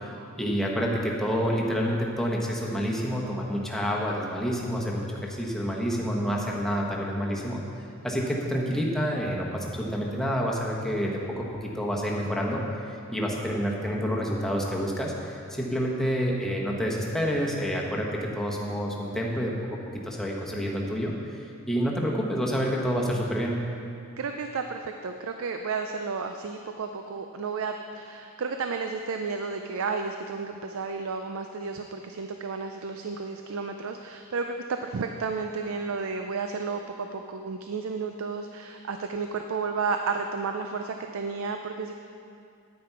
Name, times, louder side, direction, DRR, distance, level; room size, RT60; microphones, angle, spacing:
voice 1, 0.4-7.6 8.0-12.6 12.9-19.8 20.0-21.1 21.7-23.6, equal, ahead, -2 dB, 1.1 m, -28 dB
voice 2, 24.2-41.9, right 4 dB, 65° right, 5 dB, 0.5 m, -32 dB
9.5 x 9.5 x 4.6 m, 2.5 s
head